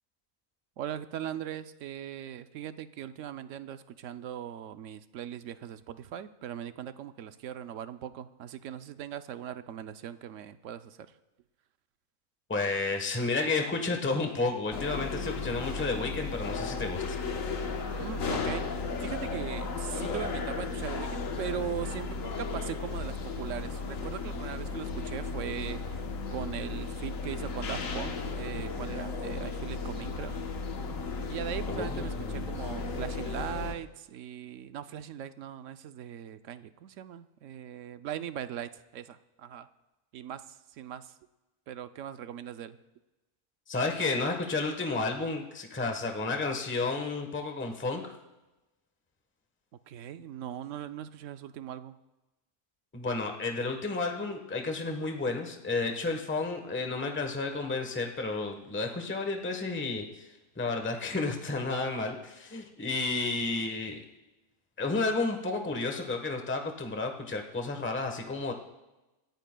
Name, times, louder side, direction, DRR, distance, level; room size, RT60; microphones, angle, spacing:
voice 1, 0.8-11.0 18.0-25.8 26.3-30.4 31.3-39.7 40.1-40.4 40.8-41.1 41.7-42.8 49.9-52.0, right 10 dB, 65° right, 11 dB, 0.9 m, -39 dB
voice 2, 12.5-17.2 31.7-32.4 43.7-48.1 52.9-60.3 60.6-64.0 64.8-68.5, left 3 dB, 10° left, 4 dB, 1.0 m, -31 dB
sound 1, 14.7-33.7, left 4 dB, 65° left, 1.4 m, -35 dB
26.0 x 14.5 x 2.2 m, 1.0 s
omnidirectional pair, 1.6 m